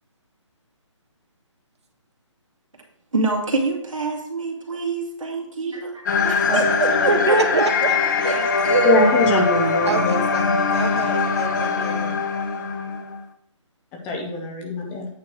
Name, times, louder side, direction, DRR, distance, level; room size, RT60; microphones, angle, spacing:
voice 1, 3.1-7.4 8.2-9.1, right 3 dB, 80° right, 1 dB, 2.0 m, -25 dB
sound 1, 6.1-13.2, left 4 dB, 35° left, 0.7 m, -21 dB
voice 2, 6.2-8.3 9.9-12.1, right 4 dB, 60° right, 6 dB, 1.2 m, -26 dB
voice 3, 8.8-10.1 14.0-15.1, left 2 dB, 10° left, 1 dB, 0.5 m, -22 dB
8.7 x 3.1 x 6.1 m, 0.70 s
hypercardioid pair, 160°, 16 cm